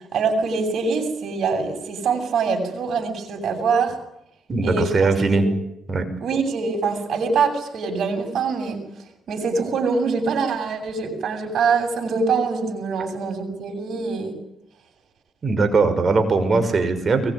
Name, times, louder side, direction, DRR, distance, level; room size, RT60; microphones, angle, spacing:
voice 1, 0.1-4.0 4.6-4.9 5.3-5.4 6.2-8.8 9.3-14.3, right 5 dB, 65° right, 5 dB, 8.0 m, -24 dB
voice 2, 4.5-5.4 5.9-6.0 13.0-13.1 13.5-13.6 15.4-17.3, right 3 dB, 40° right, 8 dB, 6.0 m, -20 dB
23.5 x 22.0 x 10.0 m, 0.81 s
cardioid pair, 90°, 0 cm